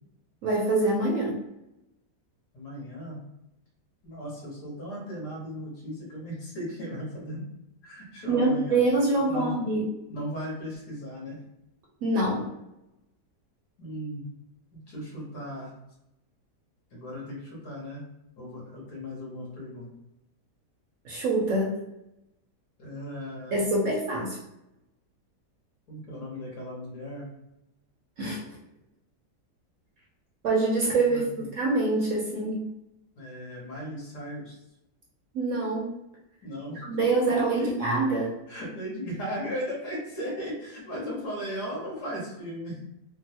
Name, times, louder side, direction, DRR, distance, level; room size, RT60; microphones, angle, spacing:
voice 1, 0.4-1.4 8.3-9.9 12.0-12.5 21.0-21.7 23.5-24.4 28.2-28.4 30.4-32.6 35.3-35.9 36.9-38.4, right 2 dB, 65° right, -3 dB, 0.8 m, -25 dB
voice 2, 2.5-3.2 4.0-7.5 7.8-8.9 9.2-9.6 10.1-11.4 13.8-14.2 14.7-15.7 16.9-18.0 18.4-19.9 22.8-23.6 25.9-27.3 30.9-31.5 33.1-34.6 36.4-36.8 37.4-37.7 38.5-42.8, equal, 75° left, -4 dB, 1.7 m, -37 dB
3.7 x 2.0 x 2.8 m, 0.88 s
omnidirectional pair, 1.8 m